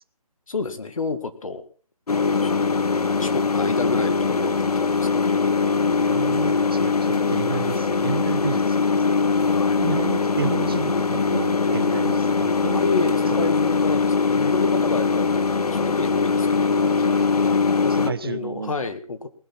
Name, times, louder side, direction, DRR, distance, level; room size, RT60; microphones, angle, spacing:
voice 1, 0.5-1.6 2.1-2.8 3.2-5.3 9.4-9.9 12.7-15.4 15.7-16.8 17.4-19.3, left 4 dB, 60° left, 10 dB, 2.1 m, -30 dB
sound 1, 2.1-18.1, left 4 dB, 75° left, 1.1 m, -21 dB
voice 2, 6.0-8.9 9.8-12.9 13.3-13.5 18.0-18.9, right 5 dB, 40° right, 16 dB, 0.7 m, -31 dB
19.5 x 12.0 x 4.3 m, 0.40 s
hypercardioid pair, 170°, 19 cm